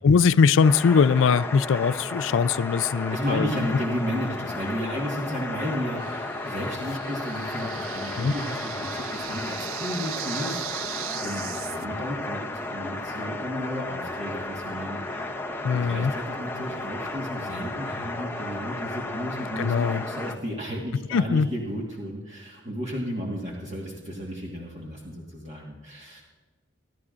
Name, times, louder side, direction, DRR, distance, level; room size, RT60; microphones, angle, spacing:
voice 1, 0.0-3.7 8.1-8.3 15.6-16.1 19.6-20.0 21.1-21.5, left 5 dB, 65° left, 0.4 m, -21 dB
sound 1, 0.6-20.4, left 2 dB, 10° left, 0.7 m, -34 dB
voice 2, 3.1-15.3 15.7-26.2, equal, 35° right, 1.5 m, -33 dB
sound 2, 6.0-11.9, right 14 dB, 85° right, 0.4 m, -38 dB
25.5 x 11.5 x 2.5 m
head